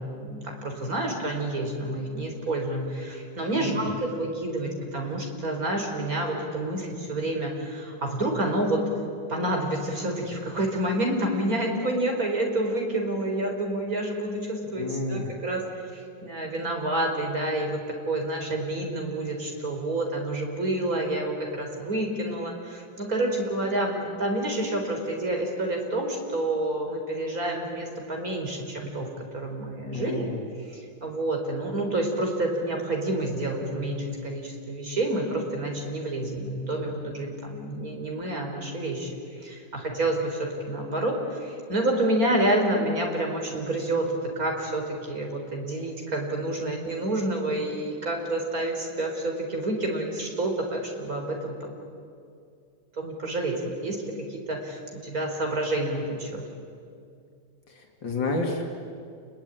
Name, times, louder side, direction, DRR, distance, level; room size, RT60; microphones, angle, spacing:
voice 1, 0.0-8.8 9.3-17.8 18.1-30.3 30.7-51.5 52.9-53.6 53.8-56.4, right 1 dB, 50° right, 2 dB, 4.8 m, -29 dB
voice 2, 3.5-3.9 14.8-15.3 29.9-30.4 58.0-58.7, left 3 dB, 85° left, 1 dB, 3.4 m, -29 dB
29.0 x 21.5 x 9.2 m, 2.4 s
omnidirectional pair, 2.0 m